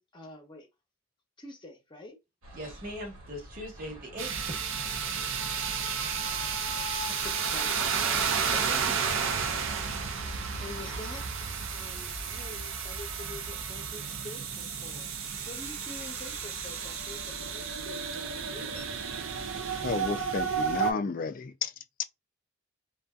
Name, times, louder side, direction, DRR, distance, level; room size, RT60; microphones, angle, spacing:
voice 1, 0.1-0.7 1.4-2.2 7.1-19.0, left 2 dB, 25° left, 0.8 m, -47 dB
sound 1, 2.4-10.5, equal, 90° right, 1.1 m, -47 dB
voice 2, 2.5-4.5, equal, 45° right, 1.0 m, -40 dB
sound 2, 4.2-20.9, right 6 dB, 70° right, 0.5 m, -32 dB
voice 3, 19.8-21.7 22.0-22.1, left 5 dB, 40° left, 0.3 m, -32 dB
2.6 x 2.3 x 2.3 m
head